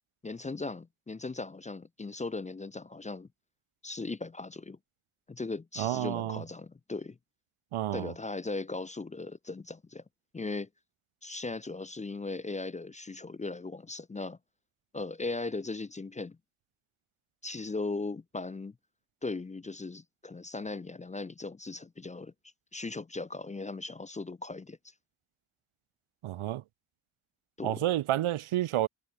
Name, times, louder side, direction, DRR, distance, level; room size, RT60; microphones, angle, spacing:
voice 1, 0.2-3.3 3.8-4.8 5.3-7.2 7.9-10.0 10.3-10.7 11.2-14.4 14.9-16.4 17.4-18.8 19.2-22.3 22.7-24.9 27.6-27.8, left 3 dB, 20° left, 0.3 m, -38 dB
voice 2, 5.8-6.4 7.7-8.1 26.2-26.6 27.6-28.9, right 13 dB, 80° right, 0.6 m, -30 dB
cardioid pair, 40°, 49 cm